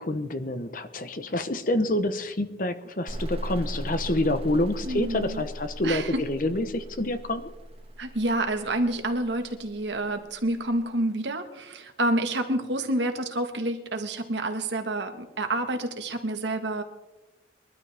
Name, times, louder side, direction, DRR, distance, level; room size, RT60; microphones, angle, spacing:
voice 1, 0.0-7.5, left 1 dB, 45° left, 10 dB, 1.0 m, -27 dB
sound 1, 3.1-10.6, equal, 30° right, 1.5 m, -38 dB
voice 2, 4.8-5.4 5.8-6.2 8.0-16.8, right 1 dB, 70° right, 6 dB, 1.6 m, -28 dB
23.0 x 12.5 x 3.5 m, 1.1 s
head